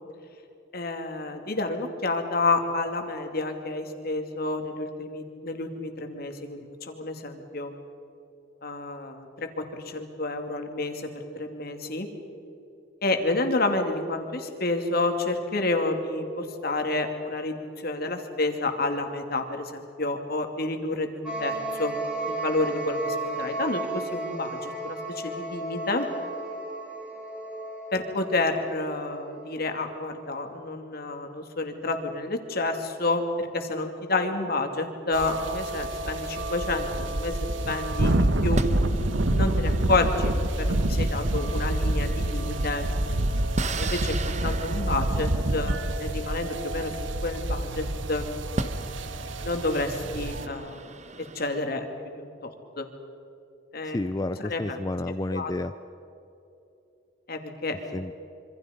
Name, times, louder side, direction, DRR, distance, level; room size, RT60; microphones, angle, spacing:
voice 1, 0.7-7.7 8.6-12.1 13.0-22.0 22.3-26.1 27.9-38.6 39.3-40.3 40.6-42.9 43.8-46.9 47.2-48.3 49.4-50.9 51.2-51.9 52.2-52.5 52.8-52.9 53.7-54.0 54.4-54.8 55.3-55.5 57.3-58.0, left 2 dB, 50° left, 5 dB, 2.7 m, -29 dB
sound 1, 21.3-29.4, right 2 dB, 5° right, 3.7 m, -34 dB
sound 2, 35.1-50.5, right 1 dB, 75° right, 1.2 m, -27 dB
sound 3, 37.2-37.8 38.5-47.7 48.2-48.3 48.6-51.6, right 2 dB, 35° right, 1.2 m, -38 dB
voice 2, 53.8-55.7 57.9-58.1, left 2 dB, 20° left, 10 dB, 0.5 m, -30 dB
26.5 x 25.5 x 5.3 m, 2.8 s
head